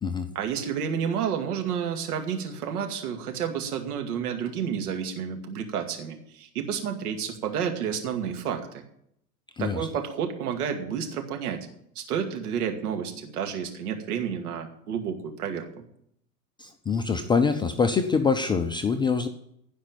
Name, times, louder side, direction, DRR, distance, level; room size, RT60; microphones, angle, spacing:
voice 1, 0.3-8.8 9.6-11.7 12.0-15.7, right 7 dB, 65° right, 4 dB, 2.3 m, -30 dB
voice 2, 9.6-9.9 16.6-19.3, left 5 dB, 10° left, 6 dB, 0.4 m, -25 dB
16.0 x 5.3 x 9.0 m, 0.72 s
hypercardioid pair, 95°, 48 cm